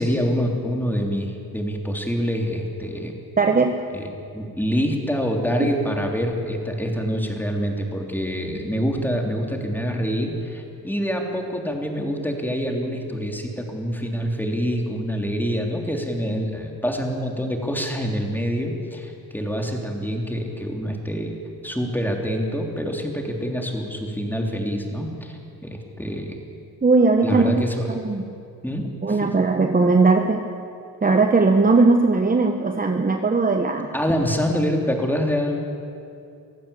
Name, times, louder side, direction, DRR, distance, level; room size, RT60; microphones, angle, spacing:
voice 1, 0.0-3.1 3.9-21.3 21.6-26.3 27.2-27.9 28.6-29.3 33.9-35.6, equal, 5° left, 2 dB, 3.5 m, -26 dB
voice 2, 3.4-3.9 5.6-5.7 26.8-27.6 28.0-28.2 29.0-30.5 31.0-33.9, right 3 dB, 25° right, 5 dB, 1.2 m, -18 dB
24.0 x 15.0 x 8.4 m, 2.6 s
cardioid pair, 85°, 36 cm